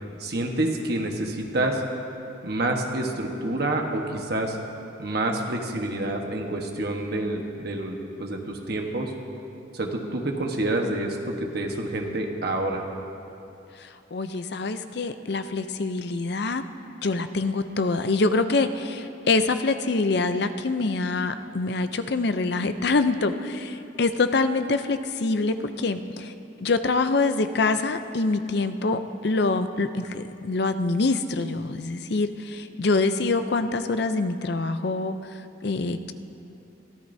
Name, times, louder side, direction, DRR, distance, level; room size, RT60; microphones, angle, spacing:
voice 1, 0.2-1.8 2.4-4.6 5.0-9.1 9.7-12.8, right 1 dB, 55° right, 2 dB, 1.2 m, -28 dB
voice 2, 13.8-16.6 17.0-26.3 26.6-35.3 35.6-36.1, left 3 dB, 60° left, 10 dB, 0.5 m, -25 dB
23.0 x 14.0 x 2.7 m, 2.7 s
head